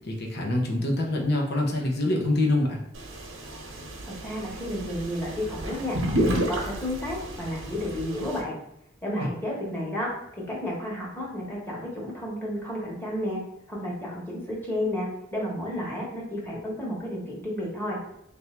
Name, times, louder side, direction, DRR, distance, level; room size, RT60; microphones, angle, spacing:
voice 1, 0.0-2.8 9.2-9.3, left 1 dB, 55° left, 1 dB, 0.8 m, -25 dB
sound 1, 2.9-8.4, right 1 dB, 85° right, 0.9 m, -31 dB
voice 2, 4.0-6.0 6.3-8.6 9.0-13.4 13.7-18.0, left 1 dB, 10° left, -4 dB, 1.2 m, -32 dB
3.3 x 2.7 x 4.3 m, 0.81 s
head